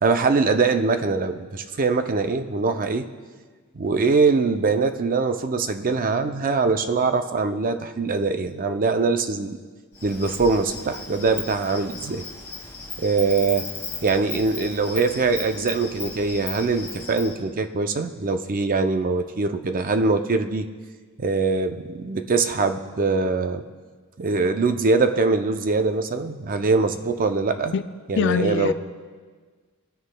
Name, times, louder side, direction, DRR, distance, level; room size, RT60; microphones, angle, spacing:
voice 1, 0.0-3.1 3.7-9.6 10.0-12.3 13.0-13.7 14.0-20.7 21.2-23.6 24.2-27.7 28.1-28.7, right 4 dB, 40° right, 8 dB, 0.5 m, -23 dB
Insect, 9.9-17.3, left 4 dB, 15° left, 1.9 m, -36 dB
voice 2, 28.2-28.7, left 6 dB, 55° left, 11 dB, 0.4 m, -23 dB
19.0 x 9.7 x 2.2 m, 1.5 s
head